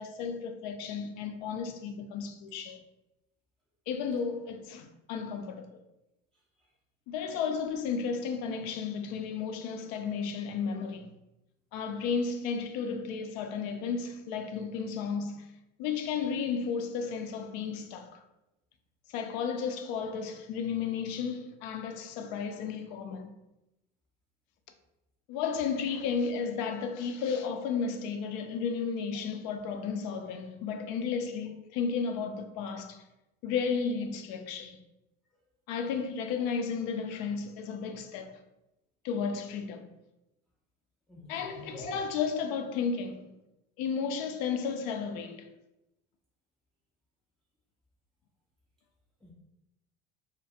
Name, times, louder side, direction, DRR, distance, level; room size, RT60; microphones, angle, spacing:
voice 1, 0.0-2.8 3.9-5.8 7.1-11.1 11.7-15.4 15.8-18.1 19.1-23.3 25.3-33.0 33.4-34.8 35.7-38.3 39.0-39.9 41.3-43.3 43.8-45.5, left 6 dB, 70° left, 0.4 m, -33 dB
voice 2, 6.3-6.7 41.1-42.0 49.2-49.3, equal, ahead, 0.4 m, -45 dB
2.2 x 2.1 x 2.7 m
supercardioid pair, 90°, 30 cm